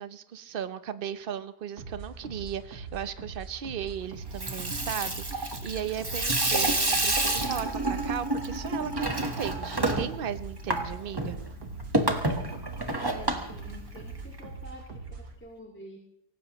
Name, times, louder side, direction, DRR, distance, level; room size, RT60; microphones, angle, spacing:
voice 1, 0.0-11.4, right 9 dB, 50° right, 13 dB, 0.6 m, -36 dB
sound 1, 1.8-15.4, right 4 dB, 85° right, 2.2 m, -42 dB
Water tap faucet / Sink (filling or washing), 4.2-14.4, right 2 dB, 15° right, 1.3 m, -29 dB
voice 2, 12.9-16.0, equal, 5° left, -1 dB, 1.9 m, -47 dB
24.5 x 18.0 x 3.0 m, 0.71 s
omnidirectional pair, 1.7 m